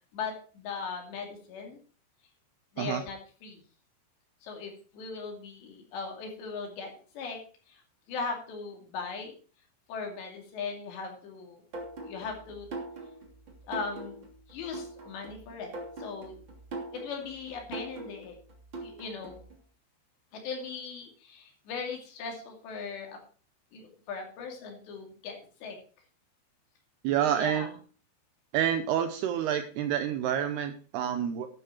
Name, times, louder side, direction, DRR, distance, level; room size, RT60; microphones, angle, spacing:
voice 1, 0.1-1.8 2.7-3.6 4.4-7.4 7.7-7.8 8.1-9.3 9.9-11.6 12.0-12.7 13.6-14.2 14.5-15.7 16.0-16.3 16.9-18.4 18.8-19.4 20.3-23.2 23.7-25.8 27.2-27.7, left 5 dB, 70° left, 2 dB, 4.7 m, -39 dB
sound 1, 11.7-19.5, right 2 dB, 30° right, 2.9 m, -42 dB
voice 2, 27.0-27.7 28.5-31.5, right 10 dB, 75° right, 9 dB, 2.5 m, -28 dB
12.0 x 9.9 x 4.4 m, 0.39 s
omnidirectional pair, 5.4 m